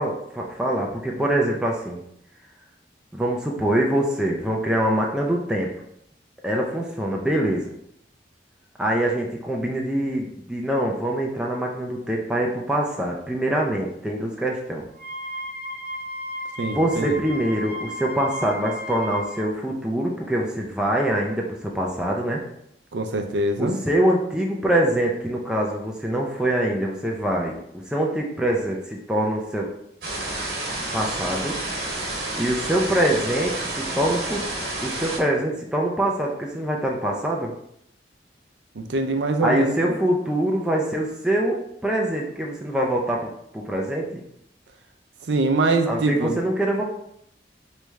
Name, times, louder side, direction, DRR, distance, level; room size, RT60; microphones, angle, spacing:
voice 1, 0.0-2.0 3.1-5.7 6.4-7.6 8.8-14.8 16.7-22.4 23.6-29.7 30.9-31.5 32.4-34.4 34.8-37.5 39.4-44.2 45.9-46.8, right 1 dB, 5° right, -1 dB, 0.4 m, -24 dB
Wind instrument woodwind instrument, 14.9-19.4, equal, 75° left, 1.2 m, -34 dB
voice 2, 16.6-17.2 22.9-23.8 38.8-39.9 45.3-46.3, right 2 dB, 85° right, 5 dB, 0.5 m, -23 dB
sound 1, 30.0-35.2, right 2 dB, 60° right, 1.2 m, -30 dB
3.2 x 3.2 x 3.5 m, 0.75 s
head